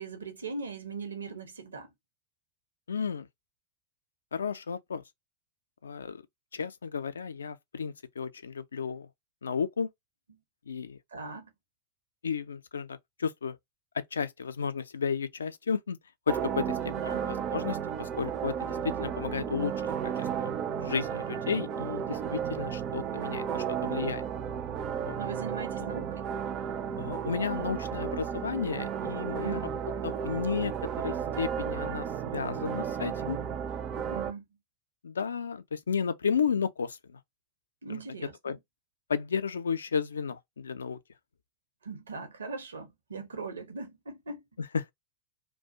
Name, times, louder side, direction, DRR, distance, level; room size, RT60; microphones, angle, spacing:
voice 1, 0.0-1.9 10.3-10.4 11.1-11.5 17.0-17.3 25.2-26.3 29.4-29.7 34.1-34.4 37.8-38.6 41.8-44.4, right 4 dB, 70° right, 0.7 m, -40 dB
voice 2, 2.9-3.3 4.3-5.0 5.8-6.2 6.5-9.1 9.4-9.9 10.7-11.0 12.2-13.6 13.9-16.0 16.3-16.8 17.2-24.2 25.0-25.2 27.0-29.7 30.0-33.4 35.0-37.2 37.9-38.0 38.4-38.6 39.1-41.0 44.7-44.9, left 6 dB, 70° left, 0.3 m, -33 dB
sound 1, 16.3-34.3, right 8 dB, 35° right, 0.4 m, -33 dB
2.3 x 2.1 x 2.6 m
figure-of-eight pair, 90°, 0 cm